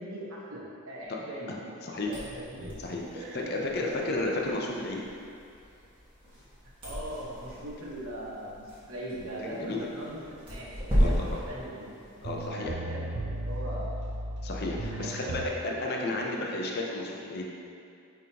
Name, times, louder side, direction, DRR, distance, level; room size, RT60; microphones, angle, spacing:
voice 1, 0.0-1.5 2.1-2.7 3.1-4.1 6.8-11.8 12.5-13.9 14.9-16.3, right 1 dB, 80° right, -5 dB, 1.2 m, -40 dB
voice 2, 1.8-2.1 2.8-5.0 9.4-9.9 11.0-11.3 12.2-12.7 14.4-17.5, left 2 dB, 45° left, -1 dB, 0.7 m, -33 dB
sound 1, 2.0-12.5, equal, 25° right, 1.5 m, -34 dB
sound 2, 11.9-12.0 12.2-15.5, right 1 dB, 55° right, 0.5 m, -35 dB
8.8 x 3.8 x 2.9 m, 2.5 s
head